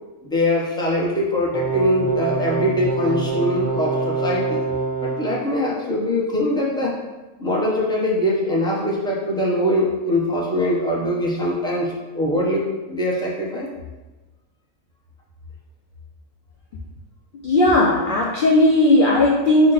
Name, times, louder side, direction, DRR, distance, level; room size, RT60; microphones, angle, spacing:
voice 1, 0.2-4.6 5.0-6.9 7.4-13.7, left 1 dB, 5° left, -5 dB, 0.5 m, -22 dB
sound 1, 1.5-5.4, right 3 dB, 55° right, 0.5 m, -25 dB
voice 2, 17.4-19.7, left 1 dB, 70° left, -2 dB, 0.5 m, -16 dB
5.7 x 2.2 x 3.9 m, 1.2 s
omnidirectional pair, 1.4 m